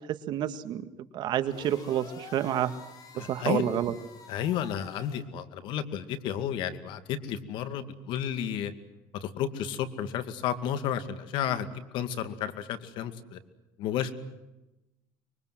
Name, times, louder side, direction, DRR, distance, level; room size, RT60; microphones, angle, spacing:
voice 1, 0.0-2.7 3.1-3.9, right 11 dB, 55° right, 10 dB, 1.9 m, -29 dB
sound 1, 1.4-5.2, left 5 dB, 40° left, 4.5 m, -48 dB
voice 2, 3.2-3.6 4.3-8.7 9.1-13.4 13.8-14.1, left 9 dB, 65° left, 11 dB, 2.3 m, -32 dB
25.0 x 23.5 x 7.7 m, 0.99 s
cardioid pair, 135°, 9 cm